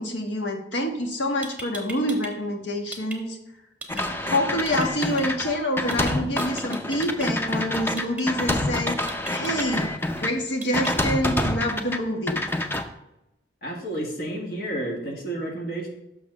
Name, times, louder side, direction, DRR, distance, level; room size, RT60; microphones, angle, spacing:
voice 1, 0.0-3.4 3.9-9.0 9.3-12.4, left 1 dB, 85° left, 3 dB, 1.3 m, -27 dB
sound 1, 1.1-1.2 1.4-2.3 2.6-3.2 3.8-4.0 4.7-5.2 5.9-6.1 6.4-7.3 8.0-8.2 9.1-9.7 10.6-10.9, right 3 dB, 10° right, 1.0 m, -38 dB
sound 2, 3.9-10.3 10.7-12.0 12.3-12.8, left 1 dB, 10° left, 0.5 m, -27 dB
voice 2, 13.6-15.9, right 1 dB, 60° left, 0 dB, 1.8 m, -31 dB
6.2 x 5.6 x 6.0 m, 0.92 s
head